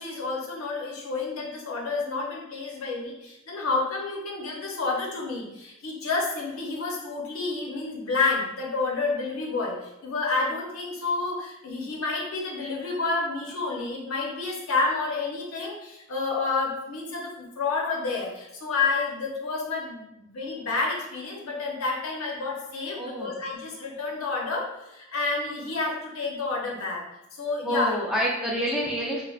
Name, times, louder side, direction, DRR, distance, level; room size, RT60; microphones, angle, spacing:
voice 1, 0.0-27.0 27.4-28.3 28.6-28.7, left 3 dB, 85° left, -1 dB, 0.7 m, -29 dB
voice 2, 22.9-23.4 27.6-29.2, equal, 5° right, -3 dB, 0.3 m, -28 dB
3.2 x 2.0 x 2.3 m, 0.86 s
head